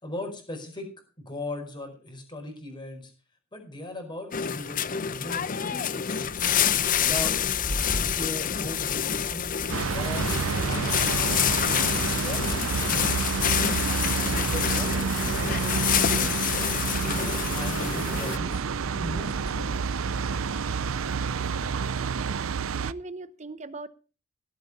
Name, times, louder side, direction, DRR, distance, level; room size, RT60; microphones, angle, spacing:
voice 1, 0.0-0.9 1.2-3.1 3.5-6.2 7.0-7.4 8.1-9.5 9.8-10.3 10.7-11.8 12.0-13.2 14.4-16.4 17.0-18.6 18.9-19.7, left 1 dB, 20° left, 3 dB, 4.7 m, -38 dB
sound 1, 4.3-18.4, left 9 dB, 40° left, 0.6 m, -27 dB
sound 2, 6.3-14.0, equal, 55° right, 5.7 m, -39 dB
sound 3, 9.7-22.9, right 5 dB, 75° right, 0.6 m, -29 dB
voice 2, 21.7-22.4 22.8-23.9, right 3 dB, 35° right, 15 dB, 0.9 m, -41 dB
17.0 x 8.3 x 5.4 m, 0.36 s
head